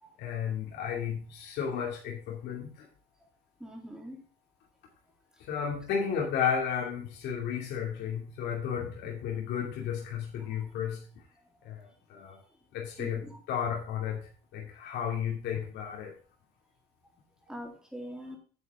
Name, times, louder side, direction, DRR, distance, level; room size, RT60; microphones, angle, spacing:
voice 1, 0.2-2.9 5.4-11.1 11.6-12.4 12.7-16.1, left 7 dB, 80° left, -2 dB, 2.5 m, -33 dB
voice 2, 3.6-4.2 10.5-10.6 13.0-13.4 17.4-18.4, equal, 5° right, 0 dB, 3.5 m, -43 dB
9.5 x 8.3 x 3.7 m, 0.40 s
cardioid pair, 110°, 17 cm